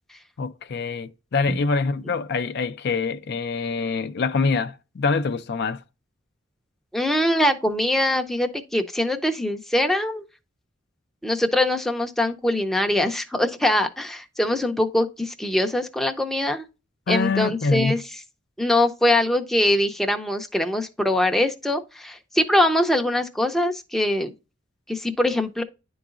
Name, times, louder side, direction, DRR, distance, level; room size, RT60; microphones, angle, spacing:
voice 1, 0.4-5.8 17.1-17.9, left 4 dB, 60° left, 0.4 m, -25 dB
voice 2, 6.9-10.2 11.2-16.6 17.1-18.0 18.6-24.3 24.9-25.6, left 1 dB, ahead, 0.5 m, -23 dB
10.5 x 3.9 x 2.4 m
head